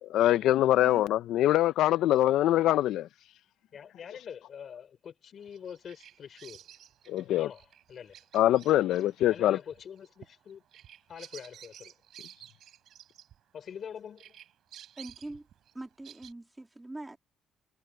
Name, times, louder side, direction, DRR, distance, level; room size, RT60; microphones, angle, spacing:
voice 1, 0.0-3.1 7.1-7.5 8.3-9.6, left 13 dB, 85° left, 0.5 m, -24 dB
voice 2, 3.7-6.6 7.4-8.2 9.3-10.6 11.1-11.9 13.5-14.4, left 8 dB, 50° left, 4.4 m, -45 dB
Bird vocalization bird call bird song, 5.4-13.8 14.2-16.3, right 11 dB, 65° right, 4.6 m, -53 dB
voice 3, 15.0-15.5 15.7-17.2, right 2 dB, 10° right, 2.4 m, -43 dB
cardioid pair, 135°, 0 cm